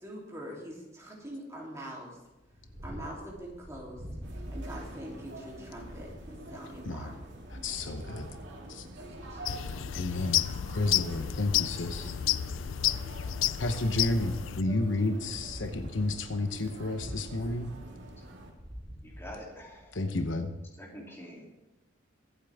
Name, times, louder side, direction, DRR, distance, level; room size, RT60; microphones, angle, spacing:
voice 1, 0.0-2.2 2.8-4.0 4.5-7.3 9.0-10.1, equal, 15° right, -4 dB, 3.4 m, -44 dB
Purr, 2.3-20.0, equal, 45° right, 5.1 m, -47 dB
sound 1, 4.2-18.5, right 1 dB, 65° right, 2.4 m, -47 dB
voice 2, 6.9-7.2 7.5-8.3 8.7-8.8 9.9-10.4 10.7-12.1 13.6-17.7 19.9-20.5, left 2 dB, 75° left, 7 dB, 1.0 m, -31 dB
sound 2, 9.4-14.6, left 12 dB, 90° left, 0.4 m, -31 dB
voice 3, 19.0-20.0 20.8-21.5, equal, 15° left, -3 dB, 3.1 m, -46 dB
23.5 x 8.6 x 3.6 m, 0.98 s
head